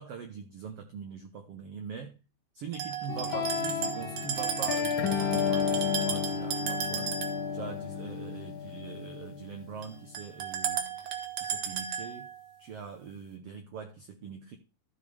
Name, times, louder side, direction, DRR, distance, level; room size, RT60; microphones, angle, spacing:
voice 1, 0.0-2.2 2.5-7.2 7.5-10.9 11.4-12.3 12.6-14.6, right 6 dB, 85° right, 1.3 m, -43 dB
sound 1, 2.7-7.5 9.8-9.9 10.1-12.4, right 8 dB, 65° right, 2.0 m, -35 dB
sound 2, 3.1-10.1, left 7 dB, 85° left, 1.0 m, -32 dB
14.0 x 6.1 x 3.4 m
omnidirectional pair, 4.1 m